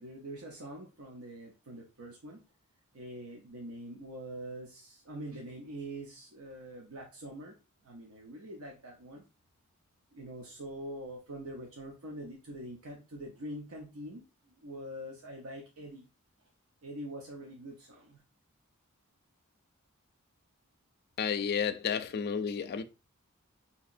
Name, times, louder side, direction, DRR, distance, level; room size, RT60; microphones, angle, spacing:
voice 1, 0.0-2.4 2.9-7.6 7.8-9.2 10.1-16.0 16.8-18.2, right 1 dB, 80° right, 0.7 m, -44 dB
voice 2, 21.2-22.8, left 7 dB, 45° left, 0.3 m, -31 dB
4.2 x 2.8 x 2.5 m
head